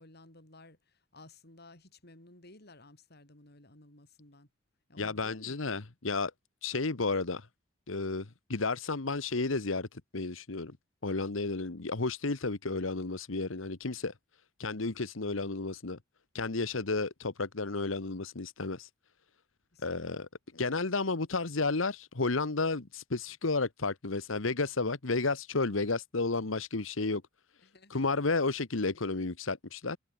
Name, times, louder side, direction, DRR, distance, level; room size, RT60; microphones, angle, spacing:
voice 1, 0.0-4.5 4.9-5.8 19.7-20.0 27.6-28.1, left 2 dB, 55° left, 5.7 m, -56 dB
voice 2, 5.0-6.3 6.6-7.5 7.9-10.7 11.0-14.1 14.6-16.0 16.3-18.9 19.8-20.3 20.5-27.2 27.9-30.0, left 3 dB, 90° left, 1.4 m, -32 dB
head